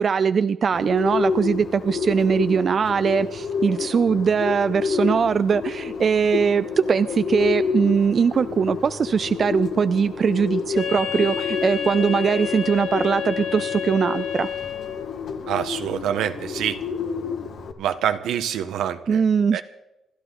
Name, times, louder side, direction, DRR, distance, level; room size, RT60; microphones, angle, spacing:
voice 1, 0.0-14.5 19.1-19.6, right 6 dB, 45° right, 13 dB, 0.5 m, -21 dB
Bird, 0.7-17.7, left 5 dB, 65° left, 1.8 m, -29 dB
Wind instrument woodwind instrument, 10.7-15.2, left 8 dB, 85° left, 2.8 m, -30 dB
voice 2, 15.5-16.8 17.8-19.2 19.5-19.6, right 9 dB, 85° right, 8 dB, 1.2 m, -26 dB
27.0 x 12.0 x 3.9 m, 0.93 s
cardioid pair, 90°, 0 cm